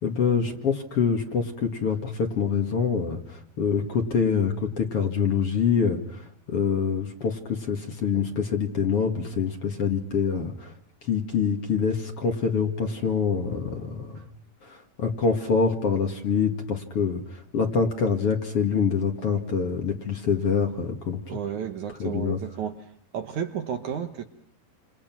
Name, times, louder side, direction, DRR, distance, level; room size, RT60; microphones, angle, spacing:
voice 1, 0.0-10.7 11.0-14.2 14.6-21.2 22.0-22.4, left 6 dB, 45° left, 4 dB, 2.7 m, -25 dB
voice 2, 21.3-22.8 23.1-24.2, right 8 dB, 60° right, 7 dB, 2.3 m, -32 dB
29.0 x 28.5 x 6.1 m, 0.65 s
omnidirectional pair, 4.4 m